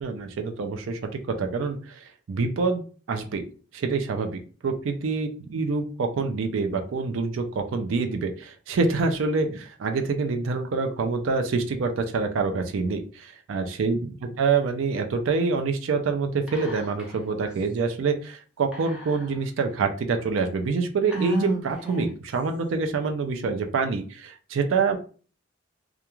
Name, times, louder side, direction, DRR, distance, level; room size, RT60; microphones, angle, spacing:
voice 1, 0.0-3.4 3.7-14.0 14.4-25.0, right 4 dB, 80° right, 6 dB, 0.4 m, -26 dB
Whispering, 16.5-17.2 17.5-17.6 18.7-19.6 20.2-20.3 21.1-22.3, right 3 dB, 5° right, 0.6 m, -31 dB
2.4 x 2.2 x 2.9 m, 0.39 s
head